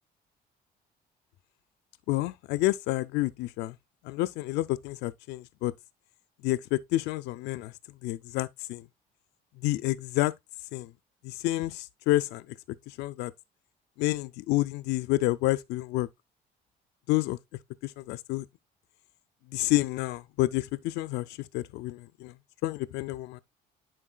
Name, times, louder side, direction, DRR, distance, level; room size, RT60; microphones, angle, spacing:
voice 1, 2.1-3.8 4.0-5.7 6.4-7.7 8.0-8.8 9.6-10.3 10.7-10.9 11.2-12.5 12.9-13.3 14.0-16.1 17.1-17.4 17.8-18.4 19.5-22.3 22.6-23.4, left 17 dB, 85° left, 0.4 m, -29 dB
9.9 x 4.5 x 2.3 m
cardioid pair, 110°, 17 cm